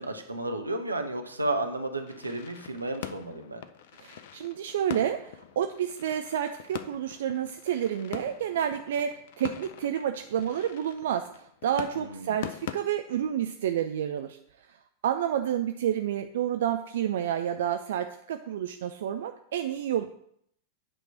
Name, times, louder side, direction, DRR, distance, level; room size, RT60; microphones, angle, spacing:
voice 1, 0.0-3.6 11.9-12.4, right 2 dB, 80° right, 4 dB, 0.8 m, -32 dB
sound 1, 2.1-12.7, left 10 dB, 55° left, 0.5 m, -43 dB
voice 2, 4.0-14.4 15.0-20.0, right 10 dB, 60° right, 7 dB, 0.4 m, -30 dB
8.4 x 3.1 x 6.4 m, 0.69 s
figure-of-eight pair, 90°, 0 cm